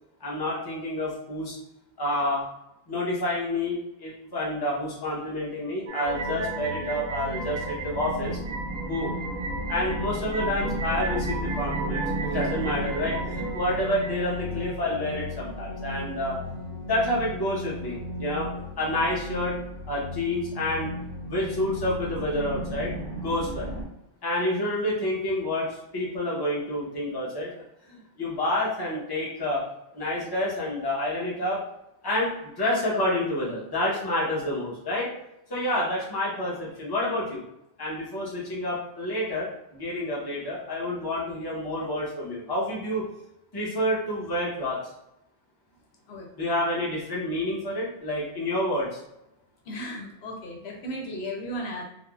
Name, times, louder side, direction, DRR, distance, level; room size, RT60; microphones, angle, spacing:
voice 1, 0.2-1.6 2.0-2.4 2.9-8.4 8.9-9.1 9.7-16.4 16.9-18.5 18.8-19.6 19.9-20.9 21.3-22.9 23.2-23.7 24.2-27.5 27.9-29.6 29.9-31.6 32.0-35.1 35.5-37.4 37.8-43.1 43.5-44.8 46.4-49.0, left 1 dB, 25° left, -5 dB, 0.8 m, -28 dB
sound 1, 5.9-14.1, right 4 dB, 60° right, 0.6 m, -35 dB
sound 2, 6.0-23.8, equal, 5° left, 1.3 m, -34 dB
voice 2, 49.7-51.8, equal, 80° left, 1 dB, 0.9 m, -35 dB
3.3 x 2.1 x 2.3 m, 0.85 s
omnidirectional pair, 1.1 m